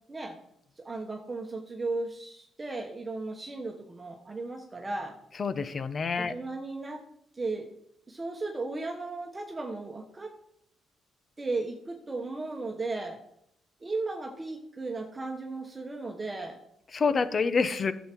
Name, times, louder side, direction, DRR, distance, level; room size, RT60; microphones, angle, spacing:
voice 1, 0.8-5.2 6.2-7.0 7.3-7.7 8.1-10.3 11.4-13.2 13.8-16.6, right 3 dB, 25° right, 2 dB, 1.2 m, -35 dB
voice 2, 5.4-6.3 16.9-17.9, left 5 dB, 40° left, 13 dB, 0.8 m, -27 dB
11.0 x 7.3 x 4.6 m, 0.74 s
cardioid pair, 90°, 0 cm